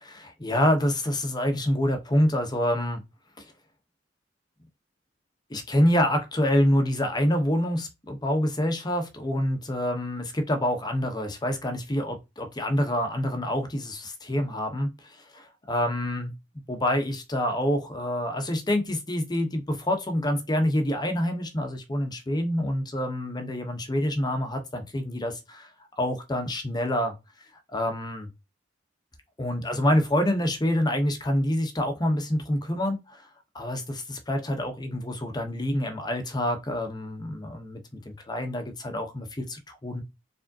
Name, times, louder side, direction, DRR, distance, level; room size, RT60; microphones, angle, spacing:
voice 1, 0.0-3.0 3.4-3.5 5.5-16.3 16.7-25.7 26.0-27.1 27.7-28.3 29.4-33.2 33.5-37.8 38.1-40.0, left 1 dB, 20° left, 0.8 m, -27 dB
4.7 x 3.4 x 2.7 m
head